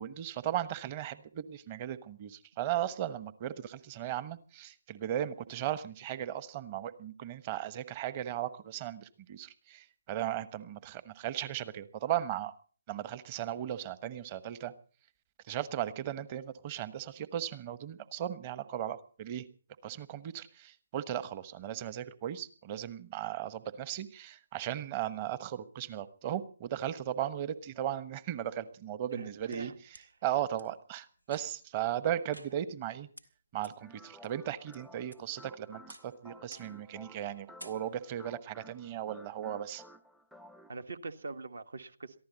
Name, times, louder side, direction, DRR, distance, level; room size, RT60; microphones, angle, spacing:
voice 1, 0.0-12.5 12.9-14.7 15.5-19.4 19.8-29.7 30.2-33.1 33.5-39.8, right 11 dB, 25° right, 1.1 m, -36 dB
voice 2, 29.1-30.1 40.7-42.2, right 3 dB, 60° right, 1.5 m, -44 dB
sound 1, 29.1-30.0 30.6-30.7 31.2-31.7 32.3-32.9 33.2-33.3 33.6-33.7 34.2-34.8 35.1-35.5 35.9-36.2 36.5-36.8 37.1-37.3 37.6-38.2, equal, 90° right, 1.9 m, -53 dB
sound 2, 33.8-40.8, equal, ahead, 0.7 m, -55 dB
23.0 x 15.0 x 4.1 m
figure-of-eight pair, 140°, 0 cm